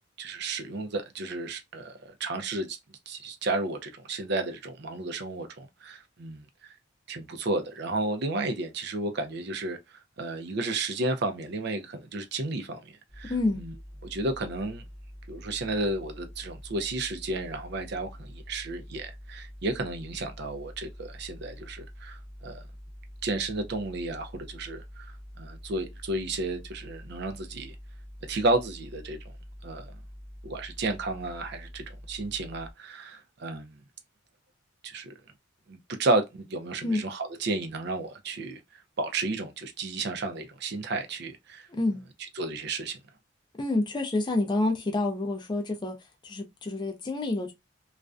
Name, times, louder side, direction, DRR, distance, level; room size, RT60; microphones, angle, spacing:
voice 1, 0.2-6.7 7.1-13.7 14.0-14.9 15.3-22.6 23.2-27.8 28.3-29.3 29.6-29.9 30.4-33.8 34.8-35.1 35.7-38.6 39.0-41.7 42.2-43.0, right 2 dB, 55° right, 0.5 m, -32 dB
sound 1, 13.1-32.7, equal, 10° right, 0.7 m, -46 dB
voice 2, 13.3-13.6 36.8-37.0 41.7-42.0 43.6-45.9 46.2-47.5, left 2 dB, 20° left, 0.4 m, -28 dB
2.4 x 2.1 x 2.4 m
head